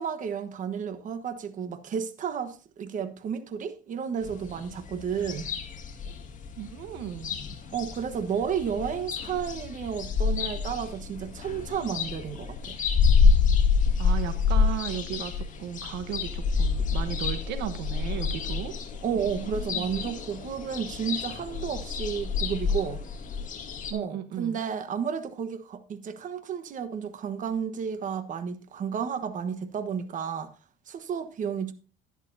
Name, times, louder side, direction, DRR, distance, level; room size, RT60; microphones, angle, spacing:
voice 1, 0.0-5.5 7.7-12.8 19.0-23.0 23.9-30.5 30.9-31.7, right 7 dB, 50° right, 1.2 m, -32 dB
sound 1, 4.2-23.9, left 5 dB, 50° left, 2.0 m, -28 dB
voice 2, 6.6-7.4 14.0-18.7 19.1-20.0 23.9-24.6, right 10 dB, 85° right, 1.0 m, -35 dB
11.0 x 11.0 x 2.7 m
cardioid pair, 110°, 17 cm